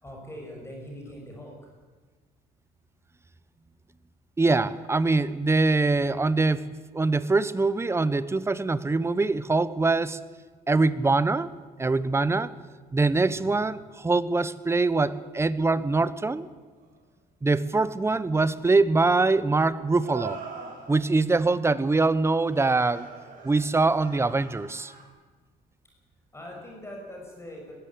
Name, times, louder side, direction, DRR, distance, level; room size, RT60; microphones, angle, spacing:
voice 1, 0.0-1.6 13.3-13.7 26.3-27.7, equal, 15° left, 0 dB, 6.2 m, -42 dB
voice 2, 4.4-6.7 6.9-10.2 10.7-11.5 11.8-12.5 12.9-16.5 17.4-20.4 20.9-23.1 23.4-24.9, right 3 dB, 15° right, 16 dB, 1.0 m, -23 dB
sound 1, 16.8-16.9 20.0-21.2 22.4-25.0, right 6 dB, 55° right, 5.4 m, -42 dB
21.0 x 16.5 x 8.5 m, 1.4 s
cardioid pair, 110°, 17 cm